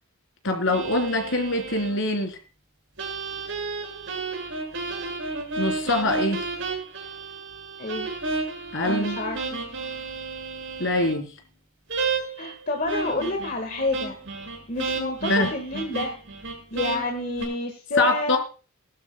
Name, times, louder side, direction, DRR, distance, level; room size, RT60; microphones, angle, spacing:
voice 1, 0.4-2.4 5.6-6.4 8.7-9.2 10.8-11.3 15.3-15.5 18.0-18.4, left 2 dB, 60° left, 5 dB, 3.7 m, -24 dB
sound 1, 0.7-1.9 3.0-11.2 11.9-12.5 12.9-17.5, right 4 dB, 60° right, 6.6 m, -32 dB
voice 2, 7.8-8.1 8.8-9.5 12.4-14.2 14.7-16.1 16.7-18.4, left 2 dB, 40° left, 4 dB, 1.6 m, -28 dB
20.5 x 12.0 x 2.2 m, 0.34 s
head